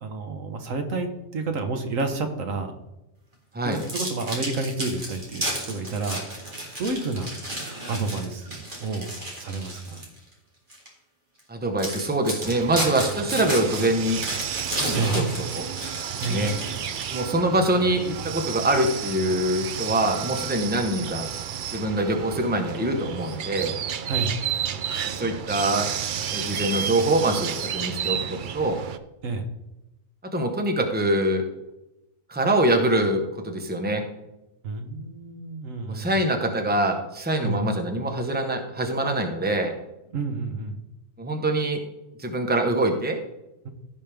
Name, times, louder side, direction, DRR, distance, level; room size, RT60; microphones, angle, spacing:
voice 1, 0.0-2.7 3.6-6.2 6.8-7.3 7.9-9.1 9.4-10.0 14.9-15.2 16.2-16.6 24.1-24.3 29.2-29.5 34.6-36.2 37.4-37.6 40.1-40.8, right 3 dB, 80° right, 6 dB, 1.4 m, -30 dB
sound 1, 3.7-10.2 10.7-10.9 11.4-11.5 11.8-17.3, right 1 dB, 40° right, 2.4 m, -32 dB
voice 2, 11.5-14.2 14.8-15.2 15.5-15.7 16.1-16.5 17.1-21.3 21.7-23.7 25.2-25.9 26.3-28.8 30.3-31.4 32.3-34.0 35.9-39.7 41.2-41.8 42.2-43.2, right 1 dB, 10° right, 4 dB, 0.9 m, -24 dB
sound 2, 12.4-29.0, right 9 dB, 60° right, 0.5 m, -32 dB
15.5 x 5.3 x 3.5 m, 0.95 s
omnidirectional pair, 1.3 m